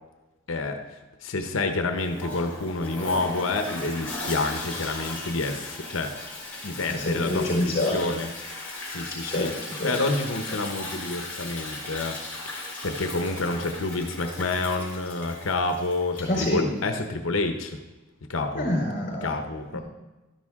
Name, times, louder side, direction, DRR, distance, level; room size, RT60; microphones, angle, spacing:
voice 1, 0.5-0.8 1.2-6.1 6.6-8.3 8.9-9.5 9.8-12.2 12.8-17.8 18.3-18.7 19.2-19.8, left 2 dB, 85° left, 6 dB, 0.9 m, -28 dB
Toilet flush, 2.0-16.6, left 2 dB, 10° left, 3.2 m, -37 dB
voice 2, 6.9-8.0 9.2-9.9 16.3-16.7 18.5-19.3 19.7-19.8, left 1 dB, 45° left, -2 dB, 4.6 m, -26 dB
12.5 x 11.0 x 3.6 m, 1.2 s
head